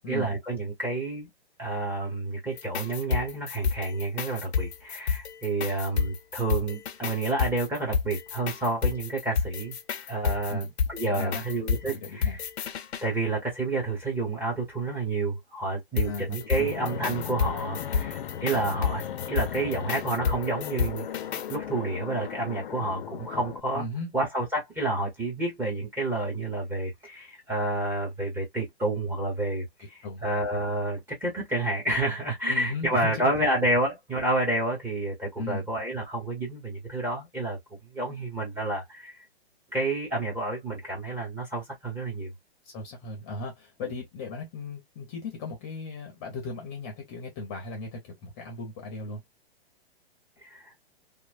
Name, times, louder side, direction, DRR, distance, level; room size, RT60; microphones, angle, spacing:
voice 1, 0.1-1.3 1.6-9.8 10.1-12.4 13.0-21.1 21.5-23.9 24.1-39.2 39.7-42.3 43.8-43.9 50.4-50.7, right 2 dB, 5° right, 0.9 m, -29 dB
sound 1, 2.5-13.1 16.0-21.6, left 6 dB, 90° left, 0.7 m, -30 dB
voice 2, 11.1-11.4 11.8-12.4 16.0-16.7 23.7-24.1 30.0-30.2 32.5-33.1 35.4-35.6 42.7-49.2, left 3 dB, 25° left, 0.7 m, -36 dB
Fixed-wing aircraft airplane, 16.5-23.6, left 9 dB, 55° left, 0.6 m, -37 dB
3.0 x 2.0 x 2.4 m
hypercardioid pair, 150°, 32 cm